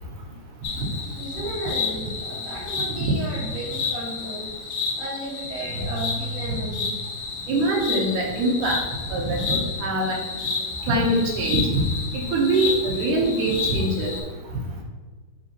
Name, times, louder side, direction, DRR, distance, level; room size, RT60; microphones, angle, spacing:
sound 1, 0.6-14.2, left 5 dB, 80° left, 3.6 m, -31 dB
voice 1, 1.2-4.5 5.0-6.9, right 1 dB, 55° right, -6 dB, 2.4 m, -34 dB
sound 2, 5.6-7.3, right 2 dB, 85° right, 2.8 m, -35 dB
voice 2, 7.5-8.8 9.1-10.2 10.9-11.8 12.1-14.1, right 2 dB, 70° right, -1 dB, 2.2 m, -23 dB
9.4 x 3.6 x 3.0 m, 1.3 s
omnidirectional pair, 4.2 m